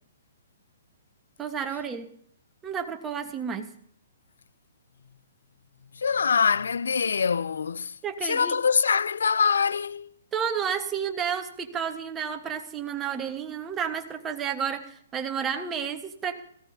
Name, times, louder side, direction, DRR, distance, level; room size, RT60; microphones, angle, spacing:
voice 1, 1.4-2.1 2.6-3.7 8.0-8.5 10.3-16.4, right 7 dB, 20° right, 1.3 m, -31 dB
voice 2, 6.0-7.9 8.2-10.1, left 6 dB, 75° left, 0.4 m, -24 dB
18.5 x 15.5 x 2.8 m
hypercardioid pair, 130°, 0 cm